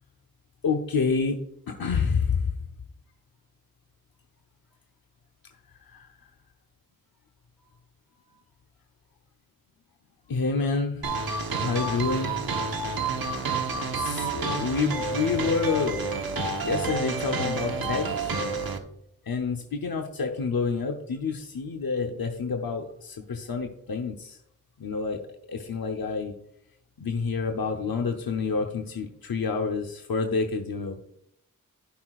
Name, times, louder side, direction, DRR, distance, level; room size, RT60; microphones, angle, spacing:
voice 1, 0.6-2.5 5.7-6.2 10.3-11.1 11.6-12.4 13.9-16.0 16.6-18.4 19.2-24.4 24.8-25.2 25.5-26.3 27.0-31.0, left 4 dB, 85° left, 3 dB, 0.9 m, -28 dB
sound 1, 11.0-18.8, right 3 dB, 90° right, 1.2 m, -29 dB
15.5 x 5.9 x 2.4 m, 0.74 s
wide cardioid pair, 75°, 35 cm